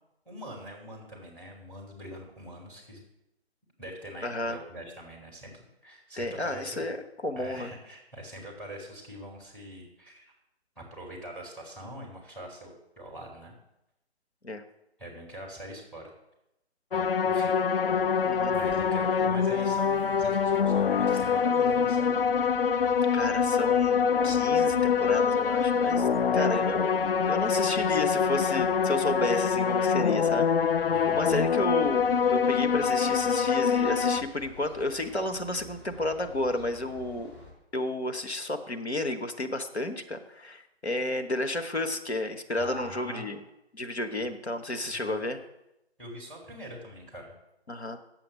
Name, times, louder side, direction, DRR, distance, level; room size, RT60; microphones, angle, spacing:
voice 1, 0.3-3.0 3.8-6.9 7.3-10.3 10.8-13.5 15.0-16.1 16.9-17.6 18.5-22.1 30.9-31.3 42.6-43.3 44.9-45.3 46.0-47.3, equal, 5° left, -1 dB, 2.3 m, -43 dB
voice 2, 4.2-4.6 6.2-7.0 7.2-7.7 14.4-14.6 18.2-18.5 23.1-26.1 26.3-37.3 37.7-43.4 43.7-45.4 47.7-48.0, left 2 dB, 90° left, 6 dB, 1.1 m, -32 dB
sound 1, 16.9-34.2, left 6 dB, 60° left, 0.5 m, -25 dB
sound 2, 17.8-37.5, left 2 dB, 30° left, 3.6 m, -50 dB
8.7 x 7.6 x 6.9 m, 0.89 s
figure-of-eight pair, 140°, 32 cm